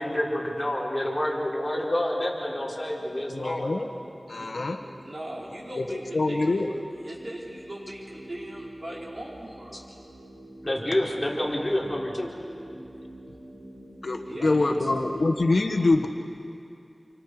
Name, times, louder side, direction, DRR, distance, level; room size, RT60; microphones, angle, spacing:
voice 1, 0.0-3.7 9.7-9.8 10.6-12.3, left 1 dB, 25° left, -5 dB, 5.2 m, -28 dB
sound 1, 2.1-15.5, right 1 dB, 35° right, 5.4 m, -47 dB
voice 2, 3.3-3.9 4.3-4.8 5.8-6.7 14.0-16.1, left 2 dB, 90° left, 4 dB, 1.4 m, -25 dB
voice 3, 5.0-6.6 7.0-10.0 14.3-14.8, right 1 dB, 55° right, -5 dB, 5.3 m, -39 dB
29.0 x 25.0 x 5.0 m, 2.5 s
wide cardioid pair, 60°, 0 cm